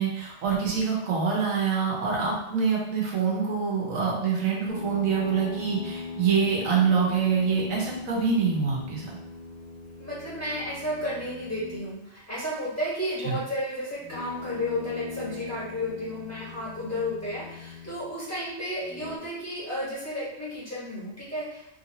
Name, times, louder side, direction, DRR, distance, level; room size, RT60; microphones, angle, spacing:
voice 1, 0.0-9.1 13.2-13.4, right 6 dB, 80° right, -3 dB, 1.3 m, -25 dB
sound 1, 4.7-12.0 14.0-18.2 18.8-19.2, left 3 dB, 75° left, 0.4 m, -40 dB
voice 2, 10.0-21.8, left 1 dB, 10° left, -11 dB, 1.5 m, -33 dB
3.4 x 2.7 x 2.9 m, 0.87 s
omnidirectional pair, 1.4 m